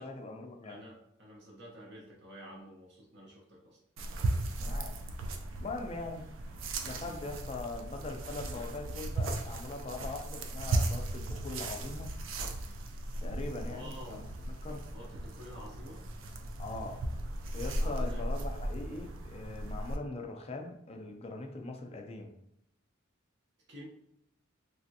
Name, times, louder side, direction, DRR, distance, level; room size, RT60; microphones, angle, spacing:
voice 1, 0.0-0.8 4.6-5.0 5.6-6.3 6.8-12.1 13.2-14.2 14.6-14.8 16.6-17.0 17.5-22.3, left 3 dB, 30° left, 4 dB, 0.4 m, -41 dB
voice 2, 0.6-3.8 6.9-7.2 13.1-13.2 13.7-14.2 14.9-16.0 17.7-18.3 23.7-23.9, equal, 60° right, -3 dB, 0.7 m, -50 dB
sound 1, 4.0-20.0, right 2 dB, 75° right, 0.4 m, -36 dB
3.4 x 2.4 x 2.6 m, 0.75 s
head